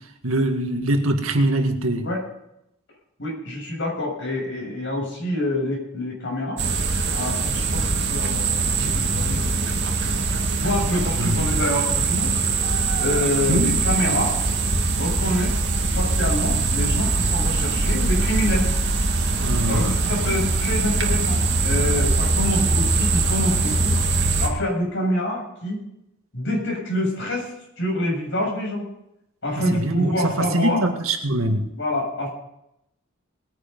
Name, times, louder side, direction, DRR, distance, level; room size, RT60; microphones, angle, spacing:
voice 1, 0.2-2.1 8.8-8.9 11.2-11.5 13.5-13.7 19.4-20.1 29.7-31.7, right 1 dB, 75° right, 5 dB, 1.9 m, -23 dB
voice 2, 3.2-6.6 7.1-10.2 10.6-12.3 13.0-14.4 14.9-15.6 15.9-18.7 19.7-24.0 24.4-25.9 26.3-27.5 27.8-28.9 29.4-30.8 31.7-32.3, left 1 dB, 60° left, 0 dB, 7.3 m, -26 dB
sound 1, 6.6-24.5, right 3 dB, 55° right, 2.1 m, -22 dB
20.5 x 9.8 x 5.4 m, 0.82 s
head